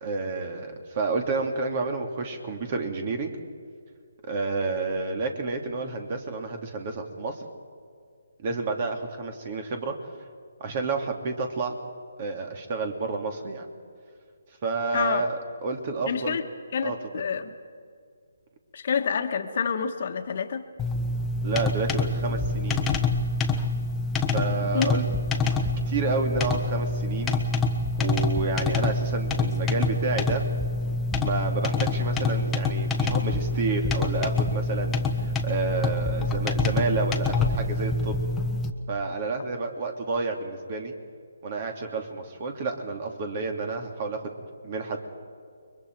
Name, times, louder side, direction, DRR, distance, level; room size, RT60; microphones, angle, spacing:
voice 1, 0.0-3.3 4.3-7.5 8.4-10.0 10.6-11.7 12.2-13.7 14.6-16.4 16.8-17.0 21.4-22.9 24.3-25.0 25.9-27.4 28.0-30.4 31.2-38.2 38.9-40.9 41.4-44.4 44.6-45.0, right 3 dB, 35° right, 4 dB, 2.7 m, -30 dB
voice 2, 14.9-15.2 16.1-16.4 16.7-17.5 18.7-20.6 24.7-24.9, left 6 dB, 50° left, 6 dB, 1.6 m, -28 dB
sound 1, 20.8-38.7, left 3 dB, 10° left, 1.3 m, -26 dB
30.0 x 22.5 x 4.7 m, 2.1 s
figure-of-eight pair, 150°, 0 cm